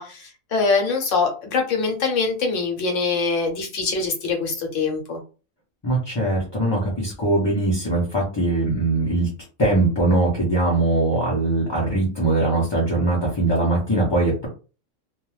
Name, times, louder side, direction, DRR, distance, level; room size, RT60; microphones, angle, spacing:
voice 1, 0.0-5.2, left 4 dB, 70° left, 3 dB, 1.0 m, -23 dB
voice 2, 5.8-9.3 9.6-14.5, right 2 dB, 30° left, -5 dB, 0.5 m, -21 dB
2.3 x 2.3 x 3.1 m, 0.34 s
omnidirectional pair, 1.4 m